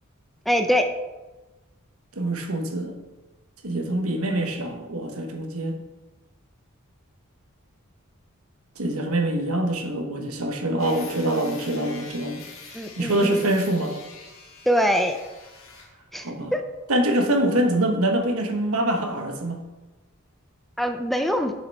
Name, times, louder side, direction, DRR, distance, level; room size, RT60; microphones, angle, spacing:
voice 1, 0.5-0.8 12.7-13.4 14.7-15.2 16.1-16.2 16.5-16.6 20.8-21.5, equal, ahead, 5 dB, 0.4 m, -23 dB
voice 2, 2.2-2.9 3.6-5.8 8.8-12.4 13.0-14.0 16.2-16.6 16.9-19.6, right 1 dB, 80° right, 4 dB, 1.2 m, -24 dB
sound 1, 10.8-15.9, left 4 dB, 70° left, 1.6 m, -44 dB
7.0 x 6.4 x 4.5 m, 1.1 s
head